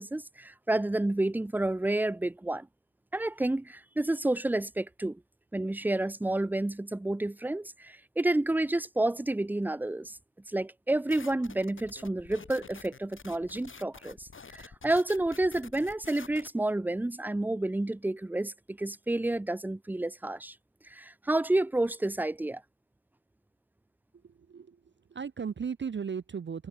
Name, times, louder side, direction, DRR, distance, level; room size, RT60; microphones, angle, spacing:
voice 1, 0.0-2.7 3.1-5.2 5.5-10.2 10.5-20.5 20.9-22.6, right 2 dB, 5° right, 0.5 m, -30 dB
sound 1, 11.1-16.5, left 5 dB, 25° left, 2.5 m, -49 dB
voice 2, 24.2-26.7, right 6 dB, 25° right, 0.8 m, -37 dB
supercardioid pair, 70°, 48 cm